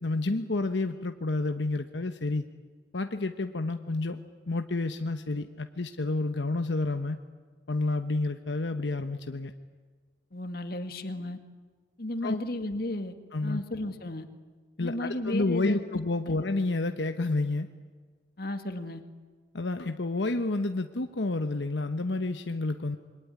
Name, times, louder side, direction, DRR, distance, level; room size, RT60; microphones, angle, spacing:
voice 1, 0.0-2.5 2.9-4.2 4.5-7.2 7.7-9.5 12.2-12.4 13.3-13.6 14.8-17.7 19.5-23.0, left 2 dB, 80° left, 7 dB, 1.1 m, -30 dB
voice 2, 10.3-11.4 12.0-13.1 13.4-14.3 14.8-15.8 16.2-16.4 18.4-19.0, left 1 dB, 55° left, 7 dB, 2.1 m, -34 dB
26.5 x 22.5 x 9.9 m, 1.5 s
head